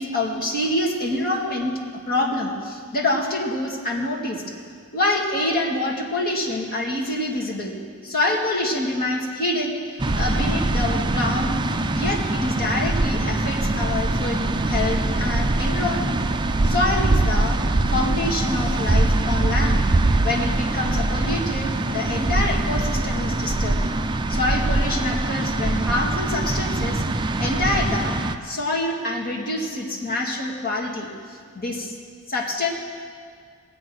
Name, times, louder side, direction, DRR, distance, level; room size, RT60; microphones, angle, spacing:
voice 1, 0.0-1.8 2.1-4.4 4.9-7.7 8.0-11.5 11.9-16.2 16.6-17.6 17.9-19.8 20.2-23.8 24.3-27.0 27.4-32.0 32.3-32.7, left 2 dB, 40° left, -2 dB, 2.1 m, -26 dB
sound 1, 10.0-28.4, right 2 dB, 20° right, 0.4 m, -23 dB
20.0 x 7.9 x 6.4 m, 2.1 s
head